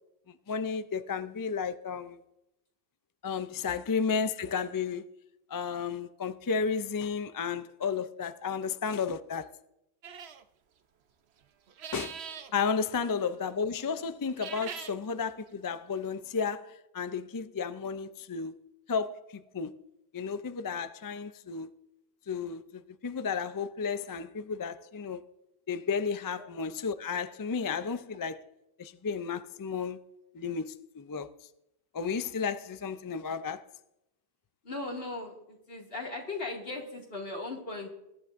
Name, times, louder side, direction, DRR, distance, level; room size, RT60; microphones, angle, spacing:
voice 1, 0.5-2.2 3.2-5.1 5.5-9.5 11.9-12.2 12.5-18.6 18.9-19.8 20.1-21.7 22.3-25.2 25.7-28.4 28.8-30.0 30.3-31.3 31.9-33.7, left 5 dB, 35° left, 0.3 m, -33 dB
sound 1, 10.0-10.4 11.7-12.5 14.2-15.0, right 7 dB, 85° right, 1.0 m, -42 dB
voice 2, 34.6-37.9, left 2 dB, 65° left, 2.4 m, -38 dB
21.5 x 11.0 x 2.6 m
omnidirectional pair, 1.0 m